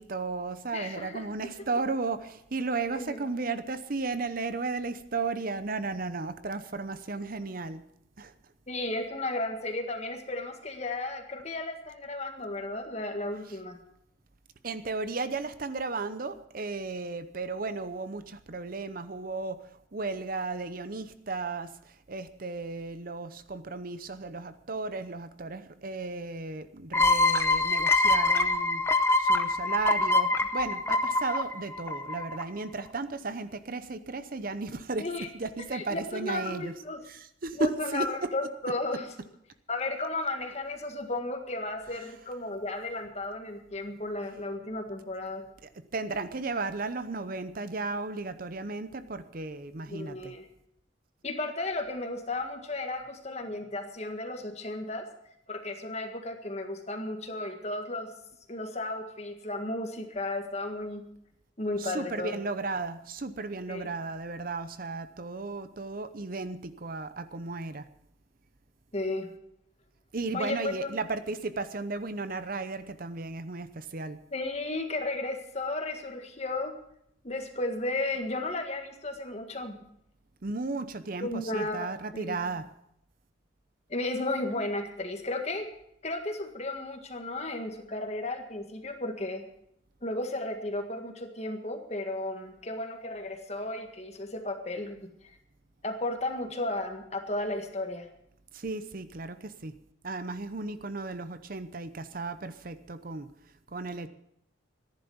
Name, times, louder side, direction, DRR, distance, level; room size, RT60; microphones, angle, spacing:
voice 1, 0.0-7.8 8.2-8.3 14.6-28.8 29.2-35.1 35.3-36.7 37.1-38.1 45.9-50.3 61.8-67.9 70.1-74.2 80.4-82.6 98.5-99.7 100.0-103.3 103.7-104.1, right 3 dB, 45° right, 11 dB, 0.7 m, -34 dB
voice 2, 0.7-1.3 1.6-1.7 2.9-3.2 8.7-13.8 35.0-35.3 35.7-37.0 37.5-39.1 39.7-45.5 49.9-50.5 51.2-55.1 55.5-58.1 58.5-61.0 61.6-62.4 63.7-63.9 68.9-69.4 70.3-71.0 74.3-76.8 77.2-79.8 81.2-81.9 82.1-82.5 83.9-85.7 86.0-89.4 90.0-95.1 95.8-98.1, left 2 dB, 35° left, 5 dB, 1.7 m, -34 dB
sound 1, 26.9-32.4, left 2 dB, 15° left, 0.7 m, -25 dB
14.5 x 11.0 x 7.1 m, 0.74 s
head